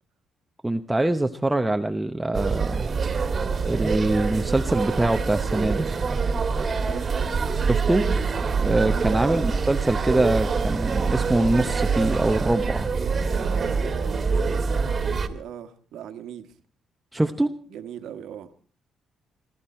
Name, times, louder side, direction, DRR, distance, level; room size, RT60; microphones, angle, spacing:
voice 1, 0.6-2.9 3.7-5.9 7.7-8.1 8.6-12.9 17.1-17.5, right 1 dB, 10° right, 7 dB, 0.9 m, -24 dB
sound 1, 2.3-15.3, right 5 dB, 40° right, 1.8 m, -25 dB
voice 2, 6.8-7.3 8.8-9.2 13.0-16.5 17.7-18.5, right 9 dB, 80° right, 8 dB, 1.6 m, -39 dB
24.0 x 13.5 x 4.4 m, 0.41 s
cardioid pair, 90°, 0 cm